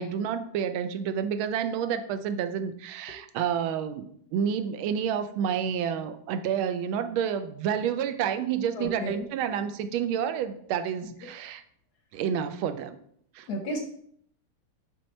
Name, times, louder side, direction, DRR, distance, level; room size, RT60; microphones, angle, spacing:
voice 1, 0.0-11.6 12.1-13.0 13.3-13.5, right 8 dB, 80° right, 10 dB, 1.4 m, -29 dB
voice 2, 8.7-9.2 13.5-13.8, equal, 65° left, 4 dB, 1.0 m, -32 dB
7.6 x 3.6 x 4.3 m, 0.67 s
omnidirectional pair, 2.3 m